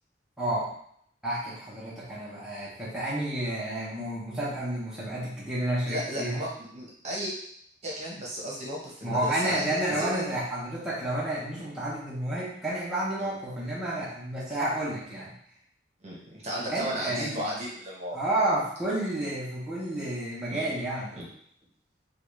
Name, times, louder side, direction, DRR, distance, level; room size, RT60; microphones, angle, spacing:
voice 1, 0.4-0.7 1.2-6.4 9.0-15.3 16.7-17.6 18.1-21.2, right 1 dB, 5° right, -9 dB, 0.8 m, -30 dB
voice 2, 5.9-7.3 7.8-10.2 13.2-13.3 16.0-18.2 20.5-20.7 21.1-21.3, equal, 35° right, -5 dB, 1.0 m, -35 dB
3.8 x 2.3 x 3.1 m, 0.66 s
head